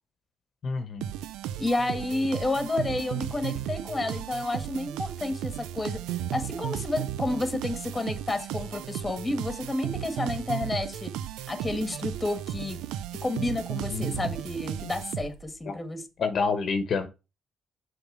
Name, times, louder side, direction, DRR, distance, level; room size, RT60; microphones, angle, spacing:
voice 1, 0.6-1.1 13.9-14.4 15.7-15.8 16.2-17.1, left 4 dB, 60° left, 1.2 m, -28 dB
sound 1, 1.0-15.6, right 11 dB, 85° right, 0.4 m, -35 dB
voice 2, 1.6-6.0 6.3-11.2 11.5-12.8 13.2-16.0, left 2 dB, 20° left, 1.7 m, -30 dB
6.7 x 3.8 x 6.2 m
supercardioid pair, 70°, 0 cm